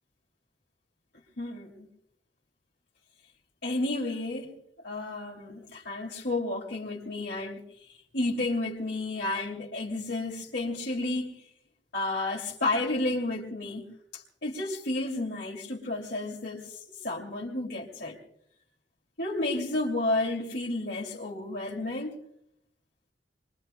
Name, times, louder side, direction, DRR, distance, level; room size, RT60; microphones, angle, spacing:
voice 1, 1.4-1.9 3.6-4.6 4.8-7.6 7.9-11.4 11.9-13.9 14.1-18.2 19.2-22.2, left 2 dB, 65° left, -4 dB, 2.4 m, -31 dB
27.5 x 23.0 x 2.2 m, 0.74 s
head